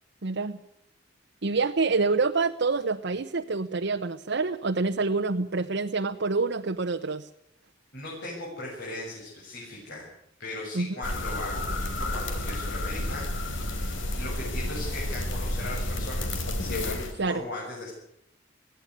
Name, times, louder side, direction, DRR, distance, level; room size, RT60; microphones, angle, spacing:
voice 1, 0.2-0.6 1.4-7.3 10.7-10.9 17.2-17.4, right 3 dB, 65° right, 6 dB, 0.9 m, -27 dB
voice 2, 7.9-10.1 10.4-17.9, left 2 dB, 60° left, -4 dB, 7.8 m, -38 dB
sound 1, 11.0-17.1, left 1 dB, 80° left, 3.4 m, -31 dB
21.0 x 16.0 x 9.9 m, 0.77 s
head